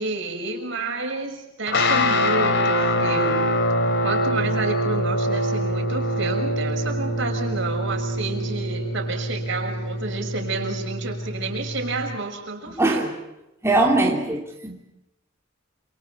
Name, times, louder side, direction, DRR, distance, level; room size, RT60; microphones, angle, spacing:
voice 1, 0.0-3.4 4.0-13.1, right 3 dB, 65° right, 3 dB, 6.3 m, -30 dB
sound 1, 1.7-12.2, left 1 dB, 60° left, 3.0 m, -24 dB
voice 2, 12.8-13.1 13.6-14.9, right 2 dB, 15° right, -1 dB, 3.0 m, -21 dB
29.0 x 28.5 x 4.7 m, 0.90 s
head